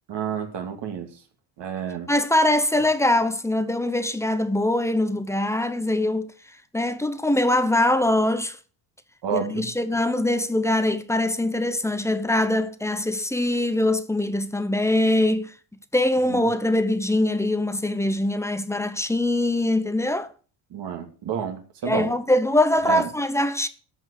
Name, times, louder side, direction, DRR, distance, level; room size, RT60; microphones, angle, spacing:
voice 1, 0.1-1.1 1.6-2.1 9.2-9.6 16.3-16.5 20.7-22.1 22.8-23.1, right 7 dB, 55° right, 2.4 m, -29 dB
voice 2, 2.1-6.3 6.7-8.6 9.3-15.5 15.9-20.3 21.8-23.7, left 1 dB, 5° left, 0.9 m, -23 dB
13.5 x 5.3 x 8.3 m
cardioid pair, 135°, 49 cm